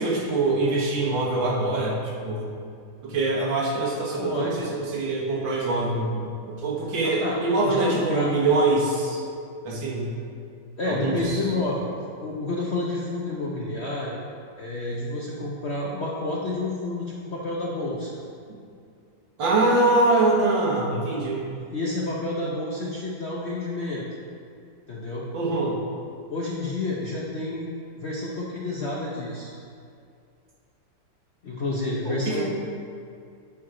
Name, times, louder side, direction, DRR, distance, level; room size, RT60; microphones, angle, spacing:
voice 1, 0.0-2.5 3.0-9.3 9.6-10.1 10.9-11.4 18.5-18.6 19.4-21.4 25.3-25.8 32.1-32.4, right 2 dB, 80° right, -3 dB, 2.0 m, -24 dB
voice 2, 4.2-4.7 7.0-7.4 7.6-8.3 10.8-11.9 12.2-14.2 14.6-18.1 21.7-24.1 24.9-25.3 26.3-29.5 31.4-32.4, left 2 dB, 55° left, -4 dB, 0.7 m, -29 dB
11.5 x 4.7 x 3.8 m, 2.4 s
omnidirectional pair, 2.0 m